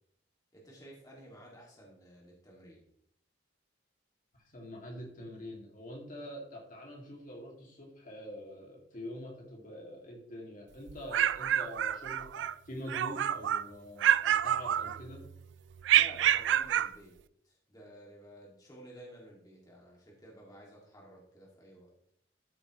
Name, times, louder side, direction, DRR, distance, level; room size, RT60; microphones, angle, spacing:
voice 1, 0.5-2.8 15.9-17.2 17.4-21.9, right 1 dB, 20° left, -3 dB, 2.2 m, -53 dB
voice 2, 4.3-15.2, left 1 dB, 45° left, -1 dB, 2.3 m, -45 dB
sound 1, 10.9-12.5 12.9-13.7 14.0-15.3 15.8-16.9, right 10 dB, 65° right, 0.3 m, -28 dB
13.0 x 7.0 x 3.1 m, 0.69 s
head